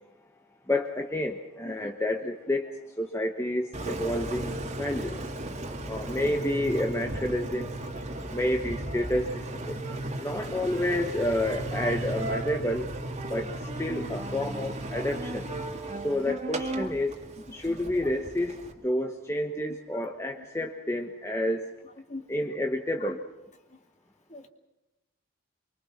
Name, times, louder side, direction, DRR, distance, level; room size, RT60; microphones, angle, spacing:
voice 1, 0.7-2.7 3.0-5.2 5.9-7.7 8.3-9.8 10.2-12.9 13.3-13.5 13.8-15.5 16.0-17.2 17.5-21.7 22.3-23.2, left 1 dB, 15° left, 3 dB, 1.2 m, -29 dB
Engine, 3.7-18.7, right 1 dB, 35° right, 2.3 m, -35 dB
voice 2, 7.8-8.4 9.7-10.1 13.2-13.5 16.8-16.9 17.7-18.1 19.9-20.0 20.4-20.7 22.1-22.4 23.0-23.1 23.7-23.8 24.3-24.5, left 3 dB, 35° left, 6 dB, 2.3 m, -46 dB
26.0 x 24.0 x 6.0 m, 1.0 s
head